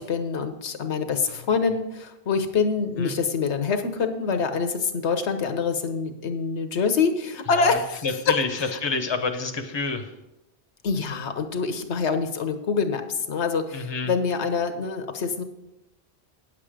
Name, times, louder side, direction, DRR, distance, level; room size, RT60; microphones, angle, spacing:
voice 1, 0.0-8.8 10.8-15.4, left 5 dB, 80° left, 8 dB, 1.2 m, -26 dB
voice 2, 7.5-8.5 8.8-10.1 13.7-14.1, left 4 dB, 25° left, 6 dB, 0.8 m, -28 dB
9.6 x 7.5 x 5.0 m, 0.93 s
omnidirectional pair, 1.1 m